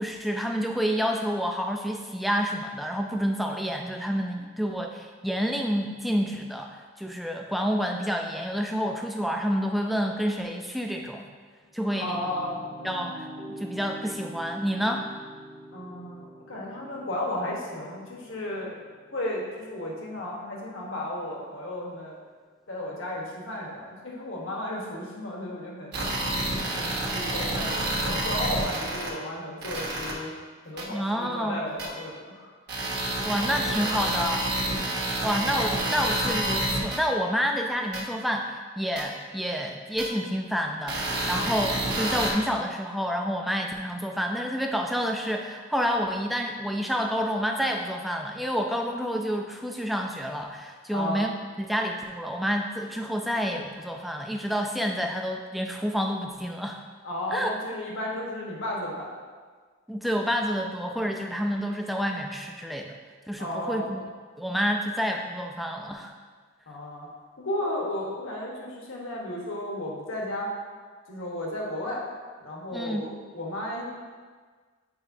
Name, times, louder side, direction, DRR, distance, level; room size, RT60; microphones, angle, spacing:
voice 1, 0.0-11.3 11.7-12.2 12.8-13.3 13.6-15.1 30.9-31.7 33.2-34.8 35.2-56.8 57.3-57.6 59.9-63.0 63.3-64.0 64.4-66.1 72.7-73.0, equal, ahead, 2 dB, 0.4 m, -29 dB
sound 1, 11.6-20.7, equal, 35° left, 0.9 m, -45 dB
voice 2, 12.0-12.6 15.7-18.8 19.1-22.2 22.7-25.9 26.7-30.3 30.6-32.5 34.8-35.1 41.3-41.5 50.9-51.2 57.0-59.1 63.4-63.9 66.7-67.1 67.4-70.5 71.1-72.0 72.4-73.8, left 1 dB, 75° left, -3 dB, 1.3 m, -34 dB
sound 2, 25.9-29.1 29.6-30.1 30.8-30.9 31.8-31.9 32.7-37.0 37.9-38.0 39.0-39.1 40.0-40.1 40.9-42.3, right 1 dB, 50° right, 1.3 m, -28 dB
8.6 x 4.9 x 2.7 m, 1.5 s
head